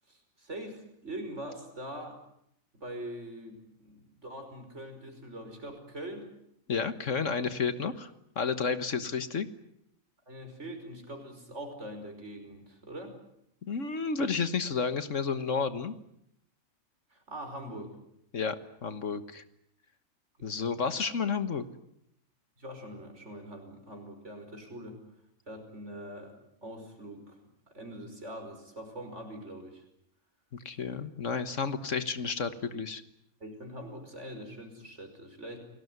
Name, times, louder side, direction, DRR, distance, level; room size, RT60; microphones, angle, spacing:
voice 1, 0.1-2.2 2.7-6.3 10.3-13.2 17.1-18.0 20.4-20.6 22.6-25.0 25.5-27.4 27.7-29.8 33.4-35.6, right 1 dB, 55° right, 5 dB, 5.7 m, -43 dB
voice 2, 6.7-9.5 13.7-15.9 18.3-18.6 18.8-19.4 20.4-21.6 30.7-33.0, left 5 dB, 65° left, 12 dB, 1.7 m, -31 dB
29.0 x 19.0 x 9.5 m, 0.74 s
omnidirectional pair, 1.4 m